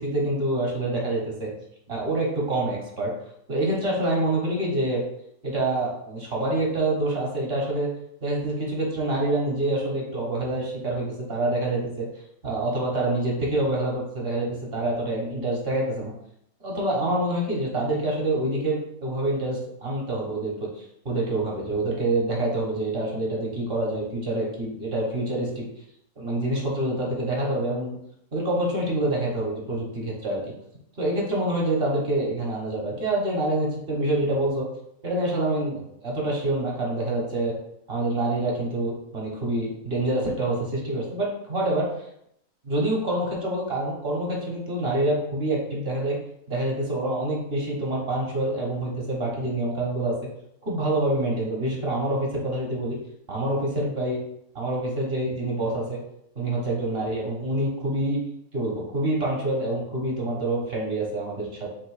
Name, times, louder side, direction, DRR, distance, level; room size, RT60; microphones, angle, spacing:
voice 1, 0.0-1.5 1.9-3.1 3.5-5.0 5.4-7.9 8.2-12.1 12.4-16.1 16.6-25.6 26.2-27.9 28.3-30.4 31.0-34.7 35.0-37.5 37.9-41.9 42.6-46.2 46.5-50.2 50.6-53.0 53.3-54.2 54.5-56.0 56.3-58.2 58.5-61.7, right 1 dB, 45° right, -3 dB, 1.2 m, -26 dB
3.5 x 2.9 x 4.7 m, 0.75 s
omnidirectional pair, 1.6 m